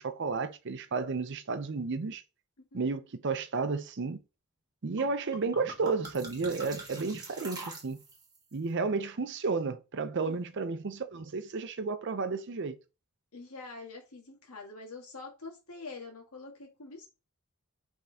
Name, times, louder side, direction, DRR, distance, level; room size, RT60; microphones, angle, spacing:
voice 1, 0.0-2.2 2.7-4.2 4.8-8.0 8.5-12.8, right 4 dB, 55° right, 0.5 m, -32 dB
sound 1, 5.0-5.1 5.3-8.4, right 2 dB, 20° right, 1.2 m, -44 dB
voice 2, 13.3-17.1, left 3 dB, 75° left, 1.7 m, -45 dB
5.2 x 3.6 x 2.7 m
head